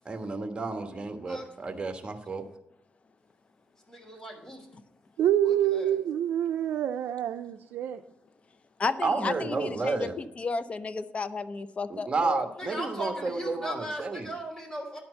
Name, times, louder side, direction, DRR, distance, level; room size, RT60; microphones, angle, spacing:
voice 1, 0.0-2.4 9.0-10.2 11.9-14.3, right 3 dB, 30° right, 6 dB, 1.3 m, -31 dB
voice 2, 3.9-4.7 5.4-6.0 12.6-15.0, equal, 20° left, -1 dB, 3.1 m, -38 dB
voice 3, 5.2-8.0, right 11 dB, 85° right, 7 dB, 0.4 m, -27 dB
voice 4, 8.8-10.1 10.4-12.5, left 4 dB, 35° left, 13 dB, 0.6 m, -32 dB
10.5 x 4.4 x 7.8 m, 0.79 s
cardioid pair, 105°, 4 cm